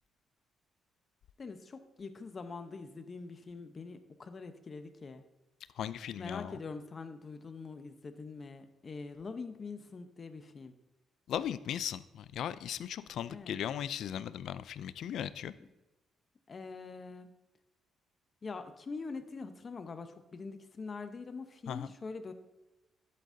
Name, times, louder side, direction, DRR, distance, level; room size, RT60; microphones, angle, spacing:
voice 1, 1.4-5.2 6.2-10.7 13.3-13.6 15.6-15.7 16.5-17.3 18.4-22.3, left 4 dB, 40° left, 9 dB, 0.8 m, -44 dB
voice 2, 5.8-6.5 11.3-15.5 21.7-21.9, left 10 dB, 75° left, 15 dB, 0.4 m, -37 dB
11.5 x 7.6 x 2.7 m, 1.0 s
cardioid pair, 90°, 0 cm